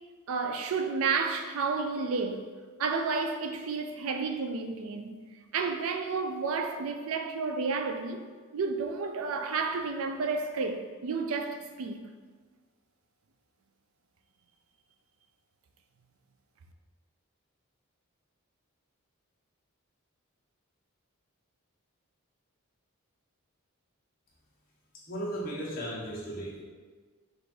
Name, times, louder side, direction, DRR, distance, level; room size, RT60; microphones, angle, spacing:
voice 1, 0.3-2.5 2.8-5.2 5.5-8.3 8.5-12.0, right 4 dB, 70° right, 0.4 m, -31 dB
voice 2, 24.9-26.6, right 1 dB, 40° left, 1.1 m, -36 dB
4.8 x 2.5 x 4.2 m
head